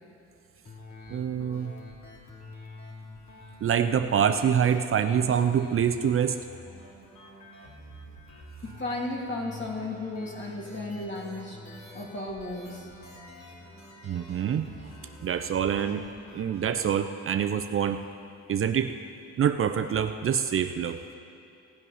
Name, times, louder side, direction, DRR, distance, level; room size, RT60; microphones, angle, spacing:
sound 1, 0.7-16.6, left 2 dB, 65° left, 3.0 m, -47 dB
voice 1, 1.1-1.7 3.6-6.4 14.0-14.7 15.2-16.0 16.3-18.0 18.5-18.9 19.4-21.0, right 8 dB, 45° right, 8 dB, 0.6 m, -25 dB
voice 2, 8.6-12.9, left 2 dB, 40° left, -1 dB, 2.5 m, -35 dB
17.0 x 8.2 x 5.7 m, 2.6 s
cardioid pair, 90°, 30 cm